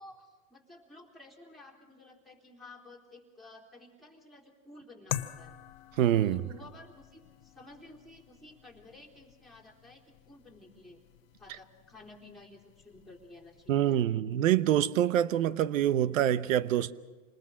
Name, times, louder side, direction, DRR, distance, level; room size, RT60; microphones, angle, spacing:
voice 1, 0.0-5.6 6.2-11.0 11.4-14.1, left 2 dB, ahead, 3.5 m, -53 dB
sound 1, 5.1-13.9, left 13 dB, 60° left, 1.0 m, -45 dB
voice 2, 6.0-6.4 13.7-16.9, right 11 dB, 75° right, 1.0 m, -26 dB
27.0 x 20.5 x 6.3 m
hypercardioid pair, 120°, 39 cm